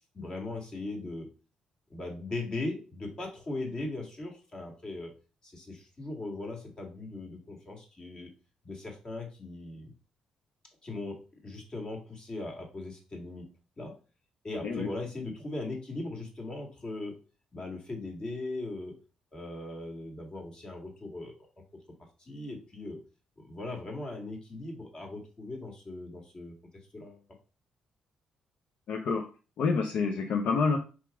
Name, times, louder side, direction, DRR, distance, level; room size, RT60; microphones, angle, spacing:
voice 1, 0.1-1.3 1.9-5.1 5.4-8.3 8.6-9.9 10.8-13.4 13.8-14.0 14.4-17.2 17.5-19.0 19.3-21.3 22.2-23.0 23.4-26.5 26.9-27.2, left 2 dB, 35° left, 1 dB, 1.7 m, -39 dB
voice 2, 28.9-29.3 29.6-30.8, left 4 dB, 70° left, 3 dB, 0.6 m, -28 dB
4.8 x 2.9 x 3.4 m, 0.35 s
supercardioid pair, 65°, 2 cm